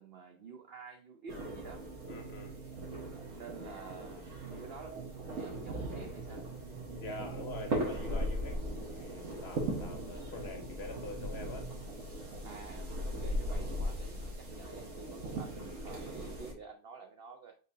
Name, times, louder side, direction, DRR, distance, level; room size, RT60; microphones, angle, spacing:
voice 1, 0.0-1.8 3.0-6.5 12.4-17.6, right 6 dB, 80° right, 0.5 m, -50 dB
sound 1, 1.3-16.5, right 1 dB, 55° right, 1.4 m, -39 dB
voice 2, 2.1-2.6 7.0-11.7 12.8-13.3, left 3 dB, 50° left, 0.9 m, -45 dB
5.1 x 4.1 x 2.6 m
omnidirectional pair, 1.7 m